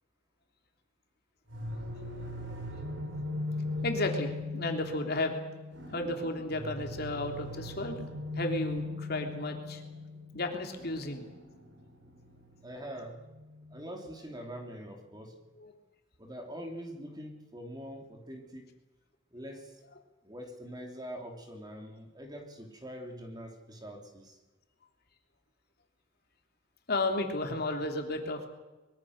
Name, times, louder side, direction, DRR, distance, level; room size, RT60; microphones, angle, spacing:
sound 1, 1.5-14.3, left 2 dB, 75° right, 4.8 m, -39 dB
voice 1, 3.8-5.3 5.9-8.1 8.3-9.8 10.3-11.3 15.6-15.7 26.9-28.5, left 2 dB, 55° left, 3 dB, 3.4 m, -33 dB
voice 2, 12.6-13.2 13.7-15.4 16.2-18.7 19.3-19.8 20.2-24.4, equal, 20° right, 3 dB, 3.2 m, -44 dB
24.0 x 23.0 x 6.6 m, 1.1 s
head